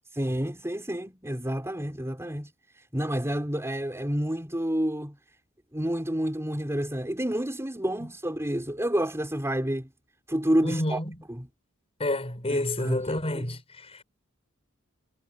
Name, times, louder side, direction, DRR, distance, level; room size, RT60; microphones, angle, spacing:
voice 1, 0.1-2.5 2.9-5.1 5.7-9.9 10.3-11.0 11.3-11.5 12.5-13.0 13.3-13.4, equal, 15° right, 5.1 m, -29 dB
voice 2, 10.6-11.1 12.0-14.0, left 1 dB, 30° left, 5.4 m, -29 dB
head